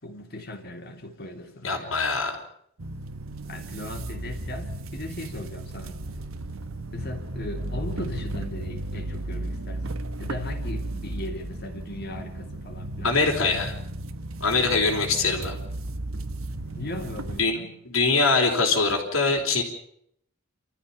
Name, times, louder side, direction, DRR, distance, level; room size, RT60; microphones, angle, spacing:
voice 1, 0.0-2.0 3.4-6.0 6.9-13.2 16.7-17.7, left 1 dB, 50° left, 3 dB, 3.4 m, -38 dB
voice 2, 1.6-2.4 13.0-13.7 14.4-15.6 17.4-17.6 17.9-19.6, left 3 dB, 85° left, 0 dB, 4.3 m, -23 dB
sound 1, 2.8-17.4, right 1 dB, 85° right, 1.4 m, -34 dB
29.0 x 14.0 x 7.1 m, 0.70 s
head